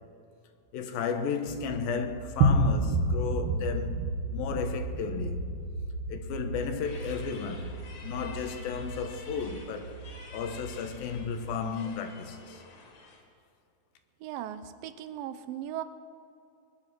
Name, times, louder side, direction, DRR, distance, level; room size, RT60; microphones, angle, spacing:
voice 1, 0.7-4.0 4.3-5.5 6.1-10.0 10.3-12.6, left 6 dB, 85° left, 2.8 m, -34 dB
sound 1, 1.5-11.6, right 2 dB, 55° right, 1.9 m, -32 dB
sound 2, 6.8-13.2, left 4 dB, 50° left, 2.8 m, -50 dB
voice 2, 14.2-15.8, right 11 dB, 80° right, 2.5 m, -37 dB
21.0 x 10.5 x 6.1 m
omnidirectional pair, 4.1 m